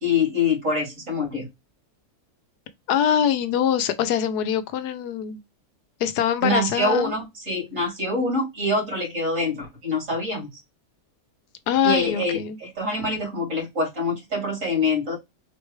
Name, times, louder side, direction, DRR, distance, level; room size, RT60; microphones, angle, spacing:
voice 1, 0.0-1.5 6.4-10.5 11.8-15.2, left 2 dB, 55° right, 3.0 m, -25 dB
voice 2, 2.9-5.4 6.0-7.1 11.7-12.6, left 9 dB, 85° left, 1.2 m, -23 dB
4.7 x 3.3 x 3.1 m
omnidirectional pair, 1.6 m